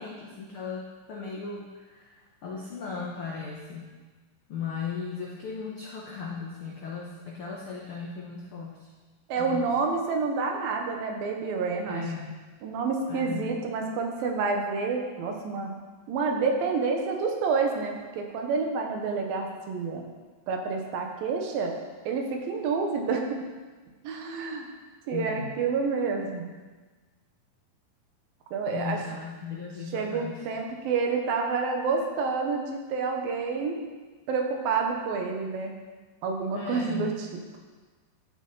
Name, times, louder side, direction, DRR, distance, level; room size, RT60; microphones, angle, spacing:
voice 1, 0.0-2.1 2.4-3.9 4.5-8.9 9.4-9.6 11.9-12.4 13.1-13.6 25.1-25.5 28.7-30.4 36.5-37.2, left 5 dB, 80° left, -3 dB, 1.2 m, -37 dB
voice 2, 9.3-12.0 12.6-15.7 16.1-20.1 20.5-21.8 22.1-23.3 24.0-24.7 25.1-26.5 28.5-29.0 29.9-33.8 34.3-35.7 36.2-37.3, right 4 dB, 90° right, 2 dB, 2.9 m, -28 dB
13.0 x 6.6 x 4.1 m, 1.3 s
omnidirectional pair, 4.1 m